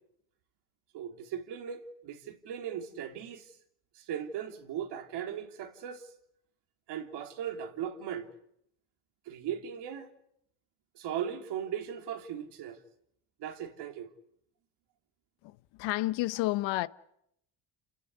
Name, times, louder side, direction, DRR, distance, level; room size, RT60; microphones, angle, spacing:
voice 1, 0.9-3.5 3.9-6.1 6.9-8.3 9.2-10.1 10.9-12.8 13.4-14.1, right 9 dB, 65° right, 3.3 m, -38 dB
voice 2, 15.4-16.9, left 18 dB, 80° left, 1.2 m, -31 dB
28.5 x 18.0 x 9.7 m
cardioid pair, 115°, 43 cm